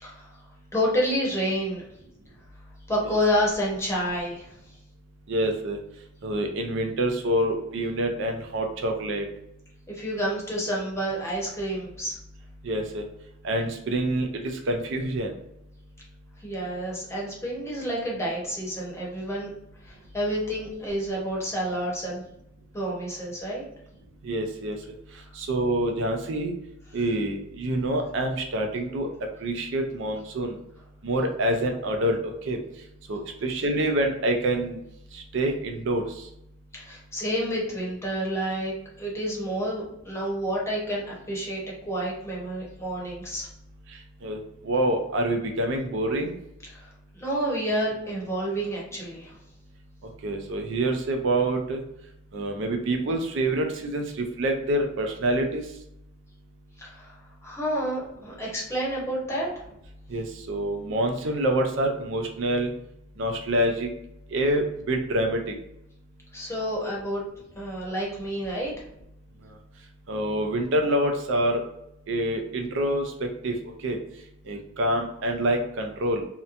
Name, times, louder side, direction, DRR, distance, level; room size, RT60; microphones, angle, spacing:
voice 1, 0.7-1.8 2.9-4.5 9.9-12.2 16.4-19.5 19.8-22.2 22.7-23.7 36.7-41.6 41.9-43.5 46.7-49.3 56.8-57.2 57.4-59.6 66.3-67.2 67.5-68.7, equal, 15° left, -4 dB, 0.8 m, -29 dB
voice 2, 5.3-5.8 6.2-9.3 12.6-13.0 13.4-15.3 24.2-24.8 25.3-26.5 26.9-29.1 29.4-30.6 31.0-32.6 33.1-34.8 35.1-36.3 44.2-46.3 50.2-51.8 52.3-55.6 60.1-62.7 63.2-63.9 64.3-65.5 70.1-71.6 72.1-73.5 73.8-74.0 74.5-76.2, right 1 dB, 65° right, 4 dB, 0.4 m, -26 dB
2.8 x 2.1 x 2.5 m, 0.80 s
head